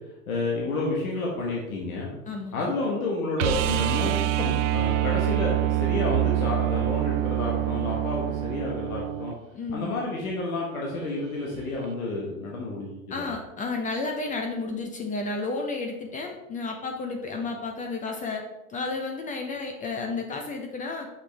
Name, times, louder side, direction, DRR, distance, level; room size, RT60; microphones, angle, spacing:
voice 1, 0.3-2.1 2.5-9.3 9.7-13.3, left 2 dB, 80° left, -3 dB, 1.6 m, -30 dB
voice 2, 2.3-2.6 9.5-9.9 13.1-18.4 18.7-21.1, left 3 dB, 20° left, 3 dB, 0.7 m, -32 dB
sound 1, 3.4-9.4 11.8-11.9, right 15 dB, 60° right, 0.5 m, -26 dB
6.0 x 5.7 x 3.4 m, 0.96 s
hypercardioid pair, 115°, 42 cm